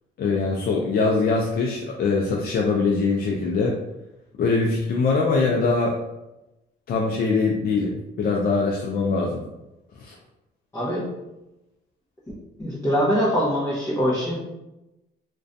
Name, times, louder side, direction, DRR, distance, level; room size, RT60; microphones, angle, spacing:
voice 1, 0.2-3.8 4.4-6.0 6.9-9.4 10.0-10.1, left 4 dB, 50° left, -1 dB, 0.4 m, -22 dB
voice 2, 10.7-11.0 12.6-14.4, equal, 15° left, -8 dB, 0.7 m, -23 dB
2.4 x 2.2 x 2.5 m, 0.96 s
cardioid pair, 90°, 20 cm